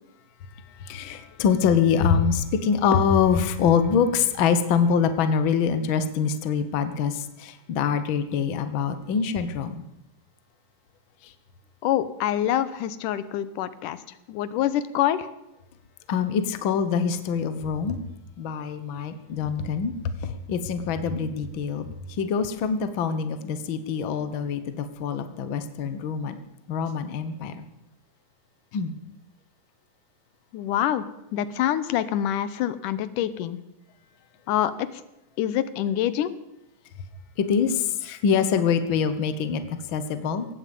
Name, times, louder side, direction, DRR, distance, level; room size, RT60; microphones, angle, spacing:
voice 1, 0.8-9.8 16.1-18.0 18.4-21.9 22.2-26.4 26.7-27.6 28.7-28.9 37.4-40.5, left 6 dB, 55° left, 10 dB, 1.5 m, -24 dB
voice 2, 11.8-14.0 14.3-15.3 30.5-31.1 31.3-33.6 34.5-34.9 35.4-36.3, left 11 dB, 85° left, 14 dB, 2.4 m, -25 dB
18.0 x 15.0 x 5.4 m, 0.90 s
omnidirectional pair, 3.6 m